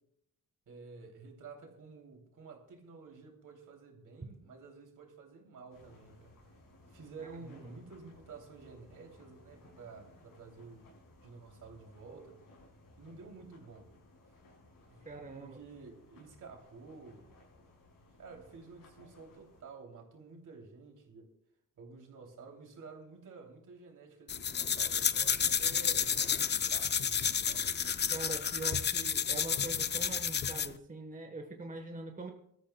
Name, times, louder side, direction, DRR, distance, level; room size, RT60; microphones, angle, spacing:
voice 1, 0.7-6.4 6.9-10.9 11.2-12.4 13.0-13.9 14.9-15.1 15.4-17.2 18.2-21.3 21.8-27.7, right 4 dB, 65° right, 1 dB, 3.1 m, -51 dB
sound 1, 5.7-19.6, left 2 dB, 90° left, 6.8 m, -60 dB
voice 2, 15.0-15.6 28.1-32.3, right 3 dB, 25° right, 3 dB, 1.2 m, -43 dB
sound 2, 24.3-30.8, left 7 dB, 35° left, 0.4 m, -31 dB
23.5 x 13.5 x 2.3 m, 0.75 s
wide cardioid pair, 120°, 33 cm